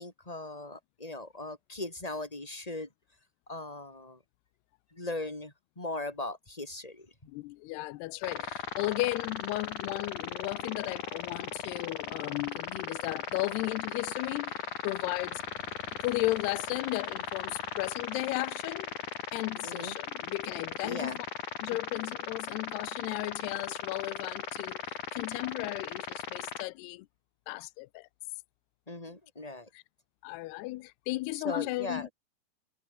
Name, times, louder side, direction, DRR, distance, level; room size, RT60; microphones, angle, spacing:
voice 1, 0.0-2.9 3.5-4.2 4.9-7.1 19.6-20.0 20.8-21.2 28.9-29.7 31.4-32.1, left 2 dB, 10° left, 3.0 m, -39 dB
voice 2, 7.3-15.4 16.0-18.9 19.3-21.2 21.6-27.1 27.5-28.1 29.7-29.8 30.2-32.1, left 20 dB, 85° left, 2.7 m, -35 dB
sound 1, 8.2-26.7, left 7 dB, 50° left, 4.4 m, -38 dB
omnidirectional pair, 4.7 m